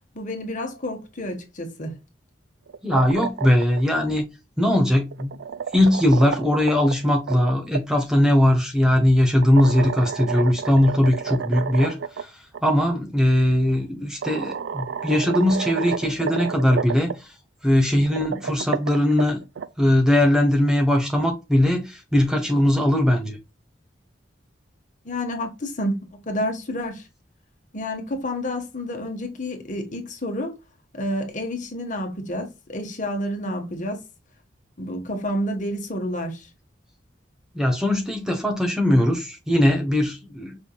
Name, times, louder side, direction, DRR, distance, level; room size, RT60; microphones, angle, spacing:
voice 1, 0.1-1.9 25.0-27.1 27.7-30.5 30.9-34.0 34.8-36.5, left 1 dB, 40° left, 1.3 m, -29 dB
sound 1, 2.7-3.8 5.0-7.8 9.4-12.2 12.5-12.6 13.7-13.8 14.2-17.1 18.0-19.7, right 6 dB, 70° right, 0.4 m, -30 dB
voice 2, 2.8-4.2 4.6-5.3 5.7-12.3 12.6-17.3 17.6-19.4 19.8-23.4 37.5-40.6, left 1 dB, 5° right, 0.9 m, -20 dB
5.4 x 3.5 x 2.3 m
head